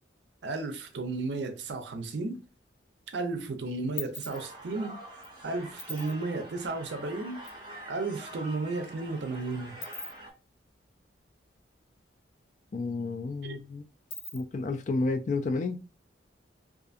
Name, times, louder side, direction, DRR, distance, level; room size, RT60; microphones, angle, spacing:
voice 1, 0.4-2.4 3.1-5.0 5.4-7.4 7.9-9.8 13.4-13.6, right 3 dB, 70° right, 0.5 m, -33 dB
sound 1, 2.4-3.1 3.4-7.6 7.9-8.0 8.2-12.1 12.4-12.5 12.8-14.7, left 2 dB, 65° left, 0.8 m, -44 dB
sound 2, 4.3-10.3, right 1 dB, 25° right, 0.6 m, -46 dB
voice 2, 12.7-13.8 14.3-15.8, left 3 dB, 40° left, 0.3 m, -31 dB
2.5 x 2.5 x 2.4 m
head